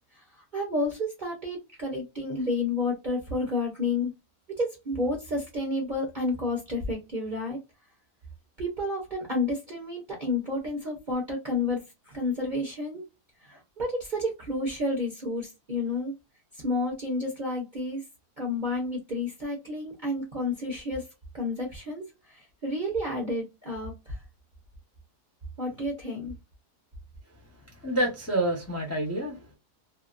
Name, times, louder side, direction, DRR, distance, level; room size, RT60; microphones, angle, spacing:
voice 1, 0.1-4.1 4.5-7.6 8.6-13.1 13.4-16.1 16.5-18.0 18.4-21.1 21.3-24.2 25.6-26.4, left 2 dB, 40° right, 0.7 m, -30 dB
voice 2, 27.7-29.5, right 1 dB, 15° left, 0.6 m, -28 dB
2.8 x 2.4 x 2.4 m
omnidirectional pair, 1.7 m